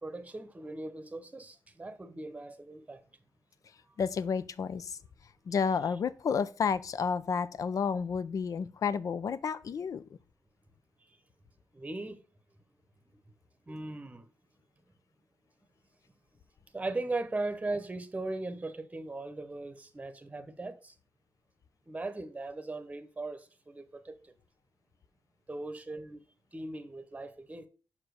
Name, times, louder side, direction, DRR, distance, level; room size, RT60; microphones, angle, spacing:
voice 1, 0.0-3.0 11.1-11.2 11.7-12.2 13.7-14.3 16.7-20.9 21.9-24.3 25.5-26.2 26.5-27.7, right 2 dB, 20° right, 0.9 m, -38 dB
voice 2, 4.0-5.0 5.5-10.0, left 6 dB, 65° left, 0.6 m, -31 dB
5.6 x 5.0 x 6.4 m
cardioid pair, 85°, 6 cm